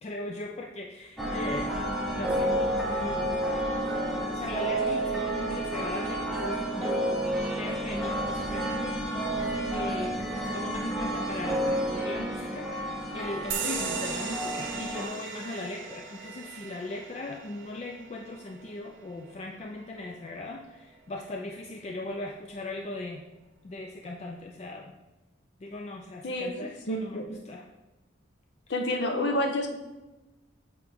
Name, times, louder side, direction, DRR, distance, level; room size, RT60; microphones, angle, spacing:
voice 1, 0.0-3.4 4.3-7.2 7.6-9.0 9.7-10.2 10.5-23.2 23.6-24.9 25.6-27.6, left 2 dB, 35° left, 1 dB, 0.3 m, -39 dB
sound 1, 1.2-15.1, right 1 dB, ahead, 0.7 m, -30 dB
Microwave oven, 9.4-9.7 10.2-17.0, right 3 dB, 80° left, 1.4 m, -52 dB
sound 2, 13.5-20.6, right 5 dB, 80° right, 0.6 m, -38 dB
voice 2, 26.2-27.2 28.7-29.7, left 1 dB, 65° left, 4 dB, 0.8 m, -29 dB
8.6 x 3.5 x 3.5 m, 1.1 s
head